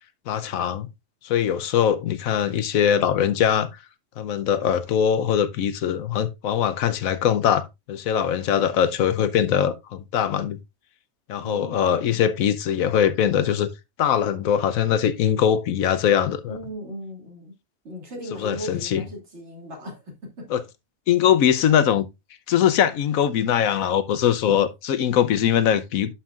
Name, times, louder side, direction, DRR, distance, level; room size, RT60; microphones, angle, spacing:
voice 1, 0.3-0.9 1.2-3.7 4.2-10.6 11.3-13.7 14.0-16.6 18.4-19.0 20.5-20.6 21.1-22.1 22.5-26.1, left 9 dB, 85° left, 1.1 m, -21 dB
voice 2, 11.4-12.1 16.5-17.6 17.8-20.5, equal, 55° right, 2.5 m, -37 dB
11.5 x 5.6 x 2.4 m
omnidirectional pair, 1.4 m